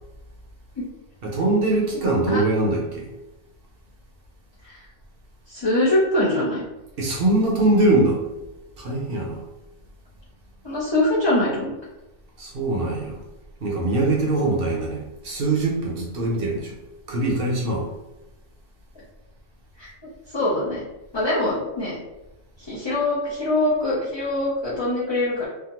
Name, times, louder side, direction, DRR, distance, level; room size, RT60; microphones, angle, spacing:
voice 1, 1.2-3.1 7.0-8.2 8.8-9.4 12.4-13.2 13.6-16.7 17.1-17.9, right 2 dB, 55° right, -2 dB, 0.9 m, -22 dB
voice 2, 5.5-6.6 10.6-11.7 19.8-19.9 20.3-20.8 21.1-22.0 22.7-25.5, left 1 dB, 30° left, -9 dB, 0.5 m, -23 dB
3.5 x 2.1 x 2.9 m, 0.98 s
omnidirectional pair, 1.2 m